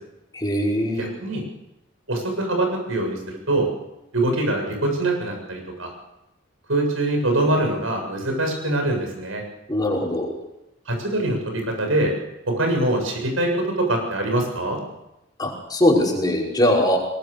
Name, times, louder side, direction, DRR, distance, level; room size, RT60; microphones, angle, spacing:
voice 1, 0.3-1.1 9.7-10.3 15.4-17.0, left 1 dB, 20° left, -2 dB, 5.4 m, -21 dB
voice 2, 1.0-1.4 2.1-3.7 4.1-5.9 6.7-9.4 10.9-12.1 12.5-14.8, right 1 dB, 90° right, 3 dB, 7.3 m, -23 dB
22.0 x 20.5 x 6.8 m, 0.93 s
head